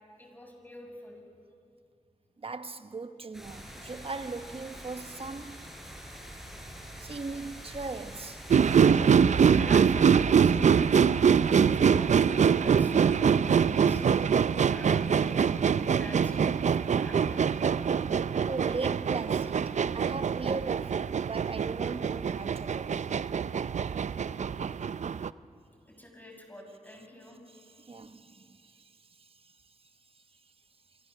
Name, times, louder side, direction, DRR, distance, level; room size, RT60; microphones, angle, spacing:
voice 1, 0.2-1.2 9.4-14.1 14.7-15.4 15.9-17.5 25.9-27.4, left 1 dB, 15° left, 6.7 m, -47 dB
voice 2, 2.4-5.7 7.0-8.4 18.4-23.1 27.5-28.9 29.2-29.5, right 3 dB, 45° right, 1.2 m, -39 dB
sound 1, 3.3-8.8, equal, 5° right, 7.0 m, -45 dB
sound 2, 8.5-25.3, right 7 dB, 60° right, 0.5 m, -24 dB
29.0 x 22.5 x 6.8 m
cardioid pair, 60°, 13 cm